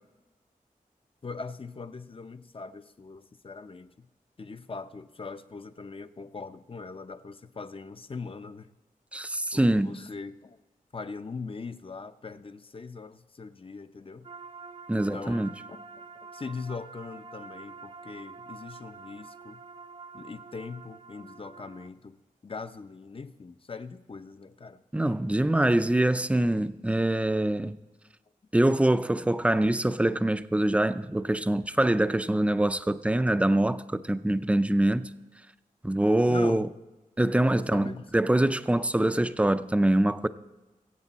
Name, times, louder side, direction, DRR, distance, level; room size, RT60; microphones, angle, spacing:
voice 1, 1.2-4.1 4.4-8.7 9.5-10.6 10.9-14.3 14.9-16.0 16.3-19.6 20.1-22.2 22.4-24.8 26.1-26.3 36.3-36.7 37.6-38.1, left 4 dB, 40° left, 10 dB, 0.6 m, -41 dB
voice 2, 9.1-10.0 14.9-15.5 24.9-27.8 28.5-35.1 35.8-36.7 37.2-40.3, right 1 dB, 10° right, 12 dB, 0.5 m, -24 dB
sound 1, 14.2-21.9, right 4 dB, 40° right, 0.8 m, -46 dB
21.5 x 8.2 x 4.1 m, 1.1 s
wide cardioid pair, 85°, 15 cm